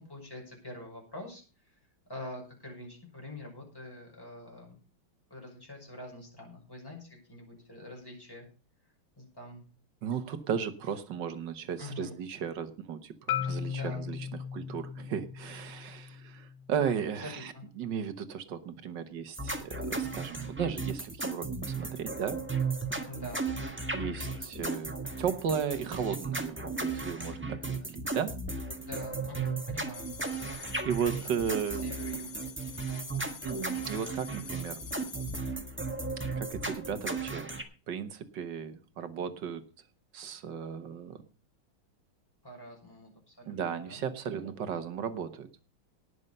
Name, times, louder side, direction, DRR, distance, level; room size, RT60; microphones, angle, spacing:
voice 1, 0.0-1.8 2.1-4.8 5.3-8.5 9.2-9.6 11.8-12.1 13.7-14.0 17.2-17.6 23.1-23.4 28.8-30.1 31.7-32.3 32.8-33.2 42.4-44.0, left 1 dB, 10° left, 0 dB, 5.9 m, -45 dB
voice 2, 10.0-21.5 21.8-22.4 23.9-28.3 30.8-31.8 33.4-34.8 36.3-37.5 37.9-39.6 40.1-41.2 43.5-45.5, right 7 dB, 65° right, 11 dB, 1.7 m, -35 dB
Marimba xylophone, 13.3-17.5, left 8 dB, 80° left, 1.6 m, -38 dB
sound 1, 19.3-37.6, right 3 dB, 5° right, 1.2 m, -35 dB
sound 2, 29.9-35.5, left 6 dB, 60° left, 2.2 m, -47 dB
18.5 x 6.7 x 5.5 m, 0.36 s
omnidirectional pair, 2.2 m